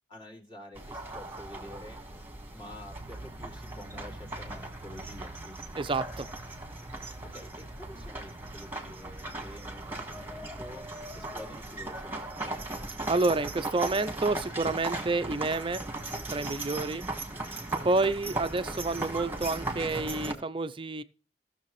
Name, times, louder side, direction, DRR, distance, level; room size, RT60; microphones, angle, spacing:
voice 1, 0.1-2.0 2.5-5.9 7.2-10.9 11.1-12.5 17.1-17.5, left 1 dB, 25° left, 2.6 m, -48 dB
sound 1, 0.8-20.3, right 2 dB, 10° right, 1.7 m, -38 dB
voice 2, 5.8-6.3 13.1-15.8 16.3-17.1 17.8-21.0, right 3 dB, 30° right, 0.5 m, -29 dB
17.0 x 6.6 x 3.1 m
head